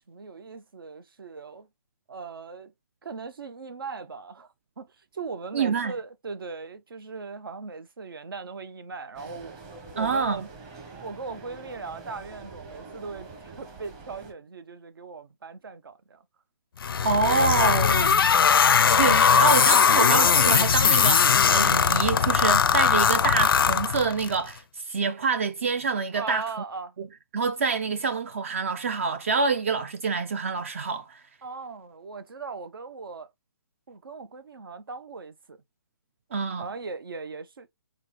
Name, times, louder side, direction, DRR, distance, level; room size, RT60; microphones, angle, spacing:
voice 1, 0.0-1.7 2.1-2.7 3.0-9.6 9.9-10.5 11.0-16.2 16.9-17.0 26.1-26.9 31.4-33.3 33.9-35.6 36.6-37.7, right 4 dB, 75° right, 1.0 m, -39 dB
voice 2, 5.5-5.9 10.0-10.5 17.0-18.2 18.9-26.4 27.0-27.1 27.3-31.2 36.3-36.7, right 5 dB, 35° right, 0.4 m, -26 dB
sound 1, 9.1-14.3, right 4 dB, 20° right, 1.0 m, -45 dB
sound 2, 16.8-24.3, left 7 dB, 80° left, 0.4 m, -20 dB
4.0 x 3.9 x 3.1 m
hypercardioid pair, 165°, 12 cm